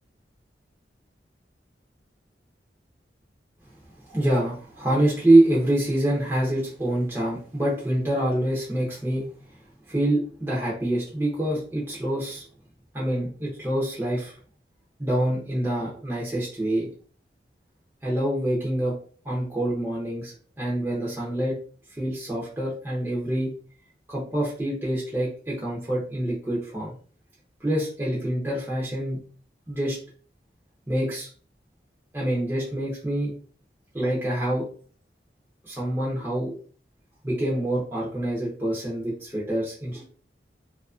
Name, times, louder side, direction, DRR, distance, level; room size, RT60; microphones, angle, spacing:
voice 1, 4.1-9.2 9.9-12.4 12.9-14.4 15.0-16.9 18.0-18.9 19.2-21.5 22.0-23.5 24.1-26.9 27.6-29.2 29.7-30.0 30.9-31.3 32.1-33.3 33.9-34.6 35.6-36.5 37.2-40.0, right 1 dB, 15° right, -5 dB, 0.6 m, -25 dB
2.7 x 2.4 x 2.4 m, 0.43 s
head